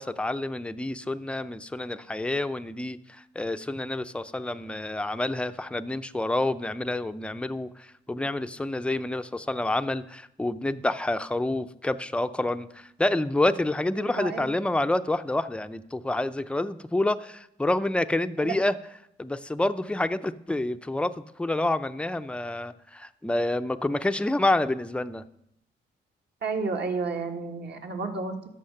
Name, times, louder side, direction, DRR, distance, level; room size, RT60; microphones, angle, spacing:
voice 1, 0.0-18.8 19.2-25.2, left 2 dB, 5° left, 10 dB, 0.5 m, -28 dB
voice 2, 14.0-14.5 18.4-18.5 26.4-28.5, right 4 dB, 55° right, 3 dB, 1.6 m, -31 dB
13.0 x 5.6 x 6.6 m, 0.79 s
cardioid pair, 90°, 20 cm